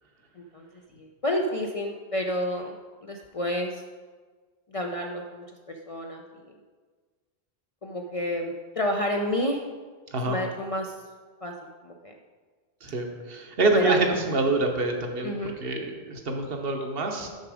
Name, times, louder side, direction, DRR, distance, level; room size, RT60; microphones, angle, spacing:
voice 1, 0.4-0.7 0.9-3.7 4.7-6.2 7.8-9.6 10.3-10.9 11.4-11.5 11.8-12.1 13.7-14.2 15.2-15.5, left 1 dB, 45° left, 2 dB, 0.5 m, -30 dB
voice 2, 12.8-17.3, right 2 dB, 60° right, 3 dB, 1.1 m, -26 dB
6.6 x 6.0 x 4.9 m, 1.5 s
omnidirectional pair, 1.1 m